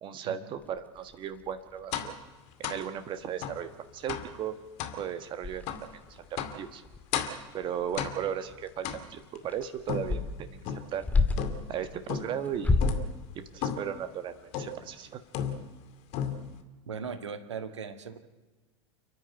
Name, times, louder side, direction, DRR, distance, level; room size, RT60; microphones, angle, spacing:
voice 1, 0.0-2.1 2.6-4.6 4.9-5.6 6.1-6.8 7.5-11.0 11.7-12.9 13.5-15.2, right 9 dB, 35° right, 9 dB, 1.5 m, -36 dB
sound 1, 0.6-2.1 2.6-2.7 3.0-3.2 3.5-3.6 4.0-4.5 4.8-4.9 5.4-11.7 12.4-13.1, left 3 dB, 10° left, 2.1 m, -31 dB
sound 2, 1.9-2.2 2.6-2.9 3.4-3.6 4.1-4.4 4.8-5.0 5.7-5.9 6.4-6.6 7.1-7.5 8.0-8.4 8.8-9.4 9.9-11.0 11.4-11.8 12.1-12.4 12.8-13.1 13.6-14.0 14.5-14.9 15.3-15.8 16.1-16.6, left 8 dB, 45° left, 2.3 m, -34 dB
voice 2, 16.9-18.2, right 6 dB, 70° right, 8 dB, 1.6 m, -38 dB
30.0 x 10.5 x 9.2 m, 1.3 s
figure-of-eight pair, 85°, 15 cm